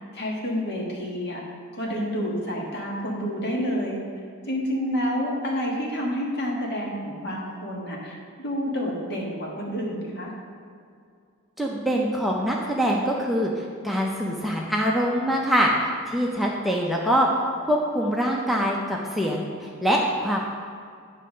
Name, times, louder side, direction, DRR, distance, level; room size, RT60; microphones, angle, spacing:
voice 1, 0.1-1.4 1.7-4.0 4.4-10.3, equal, 50° left, -2 dB, 1.5 m, -29 dB
voice 2, 11.6-15.7 16.1-17.3 17.6-20.4, equal, ahead, -2 dB, 0.6 m, -24 dB
9.3 x 3.3 x 6.4 m, 2.3 s
head